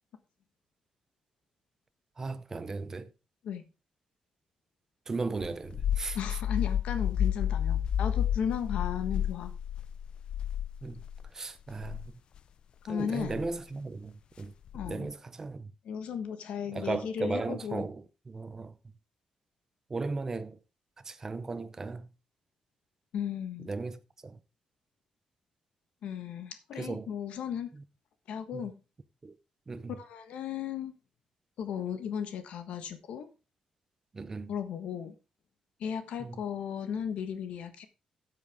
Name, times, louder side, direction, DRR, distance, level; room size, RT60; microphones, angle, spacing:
voice 1, 2.2-3.1 5.1-6.2 10.8-11.0 11.3-12.0 12.9-14.5 14.9-15.7 16.7-18.7 19.9-20.6 21.0-22.1 23.6-24.4 26.8-27.1 27.7-27.8 28.5-28.6 29.2-29.3 29.7-30.0 34.1-34.5 36.2-36.4, right 3 dB, 25° right, 0.8 m, -36 dB
sound 1, 5.4-11.3 11.7-12.0 13.2-13.5 14.7-15.1, left 10 dB, 50° left, 0.4 m, -31 dB
voice 2, 6.1-9.5 12.9-13.4 14.7-15.1 15.8-17.8 23.1-23.7 26.0-27.7 28.3-28.7 30.0-30.9 31.6-33.3 34.5-35.1 35.8-37.9, left 8 dB, 80° left, 1.3 m, -35 dB
13.0 x 7.6 x 3.5 m
cardioid pair, 150°, 2 cm